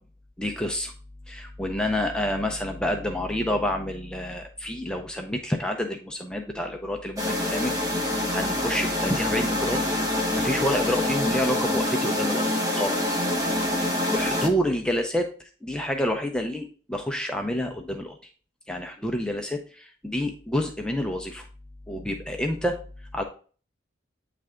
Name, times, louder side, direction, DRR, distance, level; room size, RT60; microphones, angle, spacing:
voice 1, 0.4-0.9 1.3-7.7 8.0-9.8 10.2-13.2 13.8-18.2 18.7-21.5 21.9-22.8 23.1-23.2, left 1 dB, 5° left, 3 dB, 0.5 m, -28 dB
sound 1, 7.2-14.5, left 1 dB, 20° right, 0.8 m, -26 dB
8.7 x 3.3 x 3.6 m, 0.40 s
head